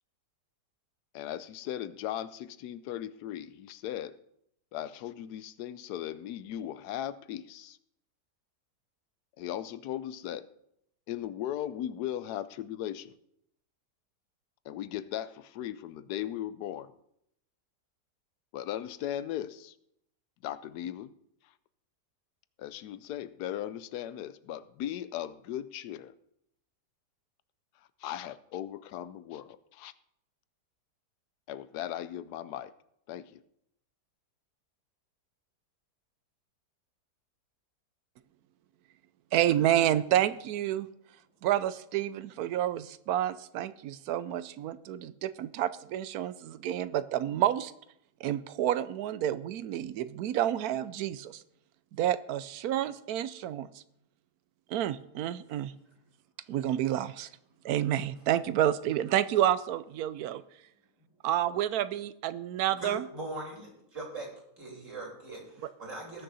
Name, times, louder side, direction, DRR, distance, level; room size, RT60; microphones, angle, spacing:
voice 1, 1.1-4.1 4.7-7.8 9.4-10.5 11.1-13.1 14.6-16.9 18.5-19.7 20.4-21.1 22.6-26.1 28.0-29.9 31.5-32.7 33.1-33.4, left 11 dB, 75° left, 15 dB, 1.1 m, -37 dB
voice 2, 39.3-40.9 41.4-47.7 48.2-51.4 51.9-53.7 54.7-55.7 56.5-57.3 57.6-60.4 61.2-63.0, right 12 dB, 70° right, 15 dB, 1.0 m, -29 dB
voice 3, 62.7-63.7 63.9-64.3 64.6-66.2, right 2 dB, 45° right, -1 dB, 3.5 m, -40 dB
19.0 x 6.4 x 4.1 m, 0.75 s
omnidirectional pair, 1.8 m